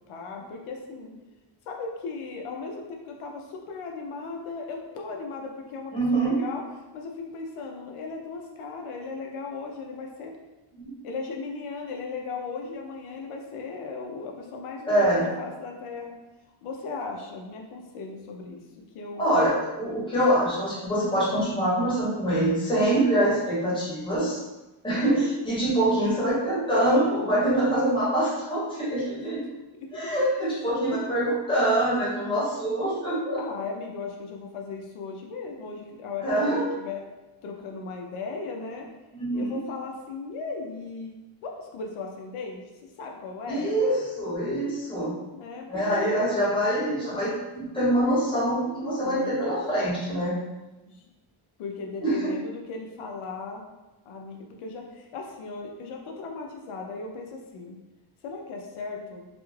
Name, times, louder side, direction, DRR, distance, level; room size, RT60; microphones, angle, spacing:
voice 1, 0.1-1.1 1.7-6.6 6.9-10.3 11.0-16.1 16.6-18.6 18.9-19.3 25.8-26.1 29.9-30.2 30.8-31.0 33.4-37.0 37.4-38.9 39.3-41.1 41.4-42.6 43.0-43.7 45.3-46.1 49.0-49.4 50.9-51.0 51.6-53.6 54.1-57.8 58.2-59.3, left 4 dB, 85° left, 1 dB, 0.6 m, -37 dB
voice 2, 5.9-6.4 10.8-10.9 14.8-15.3 19.2-24.4 24.8-29.4 29.9-33.4 36.2-36.6 39.1-39.6 43.5-45.1 45.7-50.3 52.0-52.3, right 1 dB, 10° left, -9 dB, 0.8 m, -25 dB
2.4 x 2.3 x 3.1 m, 1.1 s
wide cardioid pair, 175°, 49 cm